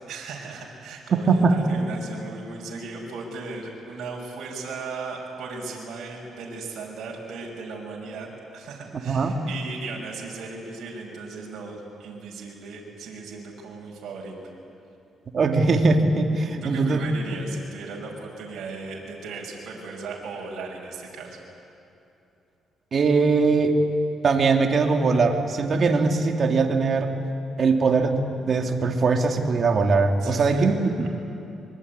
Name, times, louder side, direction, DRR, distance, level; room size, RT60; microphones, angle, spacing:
voice 1, 0.0-8.3 8.5-14.3 16.6-21.4 30.2-30.7 31.0-31.1, right 4 dB, 70° right, -2 dB, 6.1 m, -37 dB
voice 2, 15.3-17.0 22.9-23.7 24.2-27.1 27.6-31.1, right 4 dB, 50° right, 4 dB, 2.8 m, -21 dB
25.0 x 23.5 x 9.8 m, 2.8 s
cardioid pair, 90°, 0 cm